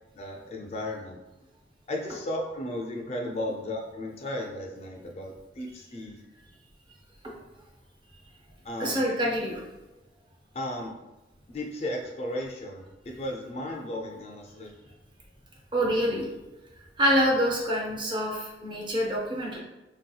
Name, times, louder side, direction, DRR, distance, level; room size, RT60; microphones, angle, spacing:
voice 1, 0.1-1.2 1.9-6.2 8.6-9.0 10.5-10.9 11.5-14.7, left 1 dB, 35° left, 1 dB, 0.3 m, -35 dB
voice 2, 8.8-9.6 15.7-16.3 17.0-19.6, equal, 25° right, -1 dB, 0.6 m, -26 dB
3.3 x 2.7 x 2.2 m, 1.0 s
head